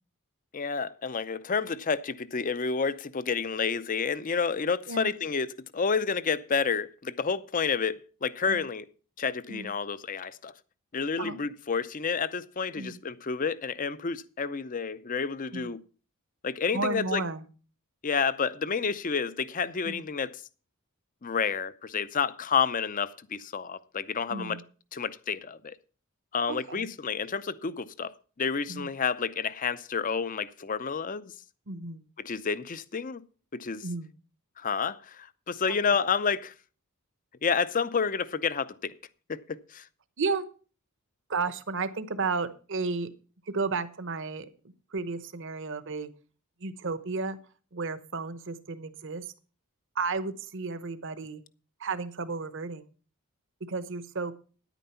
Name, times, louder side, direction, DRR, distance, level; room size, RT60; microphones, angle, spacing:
voice 1, 0.5-5.5 5.7-8.9 9.2-10.5 10.9-15.8 16.4-17.2 18.0-20.4 21.2-24.6 24.9-25.8 26.3-31.3 32.2-33.2 33.5-33.8 34.6-36.5 37.4-38.9 39.3-39.9, left 5 dB, 35° left, 0.5 m, -30 dB
voice 2, 16.7-17.4 19.8-20.0 24.3-24.6 26.5-26.9 28.7-28.9 31.7-32.0 33.8-34.1 35.7-35.8 40.2-40.5 41.3-43.1 43.5-44.5 44.9-46.1 46.6-47.4 47.7-49.3 49.9-51.4 51.8-52.8 53.7-54.4, right 4 dB, 55° right, 0.9 m, -33 dB
10.5 x 9.1 x 5.6 m
head